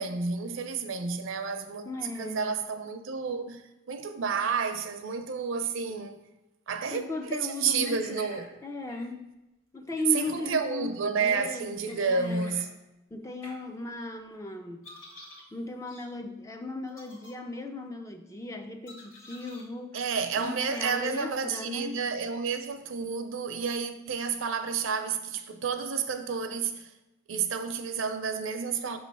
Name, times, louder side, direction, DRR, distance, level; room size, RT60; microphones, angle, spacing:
voice 1, 0.0-3.6 3.9-6.2 6.7-7.0 7.3-8.5 10.1-12.7 19.9-26.9 27.3-29.0, right 5 dB, 65° right, 0.5 m, -30 dB
voice 2, 1.9-2.5 6.9-8.3 8.6-9.3 9.7-10.9 11.2-12.5 13.1-14.8 15.5-20.0 20.4-22.0, left 2 dB, 15° left, 0.3 m, -37 dB
sound 1, 7.8-8.5 8.9-9.0 9.9-10.3 11.9-12.7 13.4-13.5 14.8-15.5 15.9-16.0 16.9-17.3 18.9-19.6 20.4-20.5, left 1 dB, 70° left, 1.6 m, -48 dB
5.9 x 3.1 x 5.3 m
head